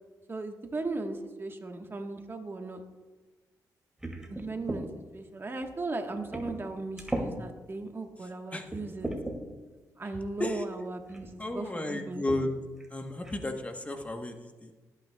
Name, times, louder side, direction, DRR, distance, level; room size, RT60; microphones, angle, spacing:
voice 1, 0.3-2.8 4.3-9.1 10.0-12.2, right 3 dB, 30° right, 4 dB, 1.2 m, -37 dB
sound 1, 4.0-4.8 5.6-5.7 6.3-6.7 7.0-7.3 8.0-8.1 8.7-9.4 10.5-10.6 11.1-11.3 12.3-12.4 12.8-12.9 13.2-13.6, right 1 dB, 10° right, 2.2 m, -36 dB
voice 2, 11.4-12.5 12.9-14.7, left 2 dB, 20° left, 5 dB, 1.0 m, -33 dB
20.5 x 9.2 x 2.2 m, 1.3 s
cardioid pair, 80°, 7 cm